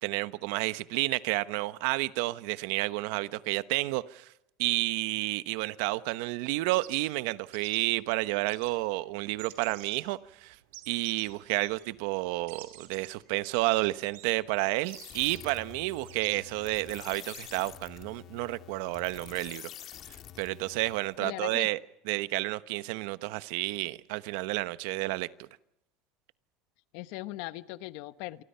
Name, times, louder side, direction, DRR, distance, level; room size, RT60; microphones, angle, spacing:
voice 1, 0.0-4.3 4.6-10.6 10.9-19.7 20.4-21.8 22.1-25.5, right 20 dB, 70° right, 1.1 m, -30 dB
sound 1, 6.5-17.4, right 15 dB, 90° right, 4.8 m, -51 dB
sound 2, 14.8-21.2, left 11 dB, 40° left, 2.1 m, -48 dB
voice 2, 21.2-21.7 26.9-28.4, left 18 dB, 65° left, 1.0 m, -39 dB
28.0 x 24.0 x 5.7 m
supercardioid pair, 145°, 0 cm